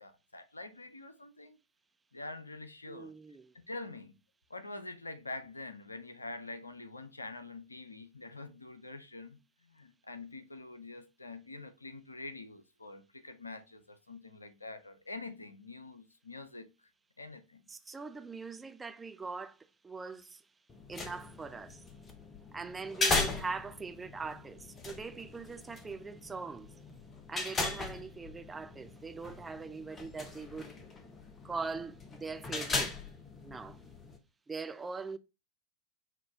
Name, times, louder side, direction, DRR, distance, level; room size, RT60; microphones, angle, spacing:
voice 1, 0.0-1.6 2.1-3.1 3.7-4.1 4.5-9.4 9.7-16.7 17.2-17.6, left 2 dB, 80° left, 0.5 m, -45 dB
voice 2, 2.9-3.5 17.7-20.4 20.9-21.8 22.5-26.7 27.3-30.7 31.4-33.0 33.4-33.8 34.5-35.2, right 4 dB, 15° right, 0.4 m, -42 dB
sound 1, 20.7-34.2, left 3 dB, 20° left, 0.8 m, -38 dB
5.9 x 2.5 x 3.4 m
figure-of-eight pair, 90°, 0 cm